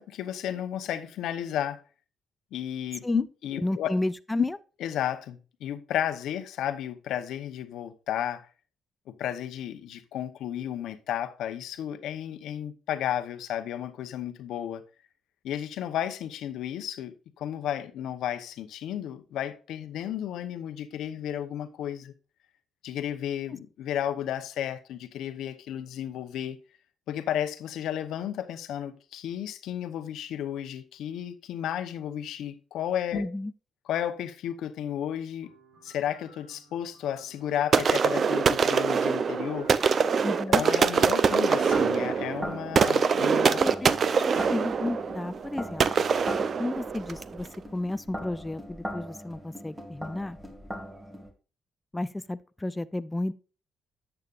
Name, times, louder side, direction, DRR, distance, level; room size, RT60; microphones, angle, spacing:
voice 1, 0.0-1.8 2.5-3.9 4.8-8.5 9.2-14.8 15.4-22.1 22.8-26.6 27.1-33.3 33.9-35.5 35.8-39.7 40.5-43.7, left 10 dB, 80° left, 0.9 m, -33 dB
voice 2, 3.6-4.6 33.1-33.5 40.2-40.6 43.6-43.9 44.5-45.9 46.6-50.4 51.9-53.3, left 2 dB, 15° left, 0.4 m, -32 dB
sound 1, 35.4-43.3, equal, 85° right, 4.4 m, -58 dB
sound 2, 37.7-47.4, right 6 dB, 50° right, 0.6 m, -24 dB
sound 3, 41.2-51.3, equal, 10° right, 2.1 m, -40 dB
10.5 x 8.0 x 2.5 m
cardioid pair, 90°, 0 cm